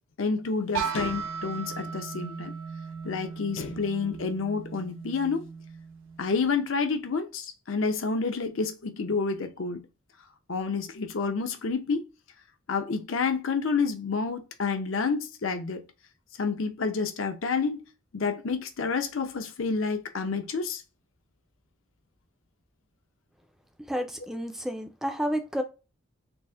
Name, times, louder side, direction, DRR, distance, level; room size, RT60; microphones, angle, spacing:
voice 1, 0.2-2.5 3.0-5.5 6.2-9.9 10.5-12.1 12.7-15.9 16.4-17.8 18.1-20.8, left 4 dB, 75° left, 0.6 m, -29 dB
sound 1, 0.7-6.5, right 6 dB, 75° right, 0.6 m, -37 dB
voice 2, 23.9-25.6, equal, ahead, 0.3 m, -30 dB
4.0 x 2.1 x 3.4 m
head